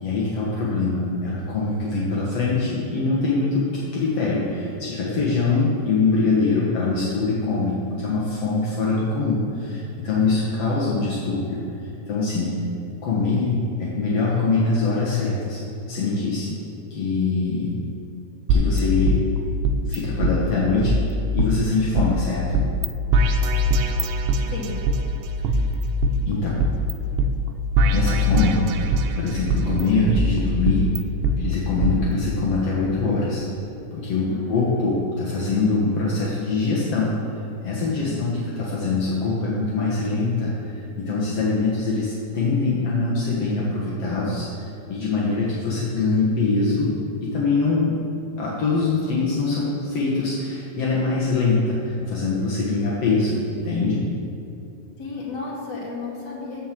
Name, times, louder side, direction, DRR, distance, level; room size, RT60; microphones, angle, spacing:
voice 1, 0.0-11.6 12.1-12.6 13.0-16.6 16.9-17.9 18.5-19.2 19.9-21.0 21.3-22.6 25.5-25.6 26.3-26.6 27.8-30.9 31.4-33.5 33.9-37.2 37.6-46.9 47.2-48.0 48.4-54.1, left 3 dB, 65° left, -6 dB, 1.5 m, -23 dB
sound 1, 18.5-20.0 20.2-20.3 20.8-22.1 22.5-22.9 23.1-25.0 25.4-26.9 27.2-27.3 27.8-29.1 29.5-31.3 31.8-31.9, equal, 85° right, 3.0 m, -21 dB
voice 2, 34.3-34.8 38.0-38.6 52.6-52.9 55.0-56.6, left 4 dB, 30° left, -5 dB, 2.3 m, -34 dB
15.0 x 5.4 x 7.5 m, 2.8 s
omnidirectional pair, 5.0 m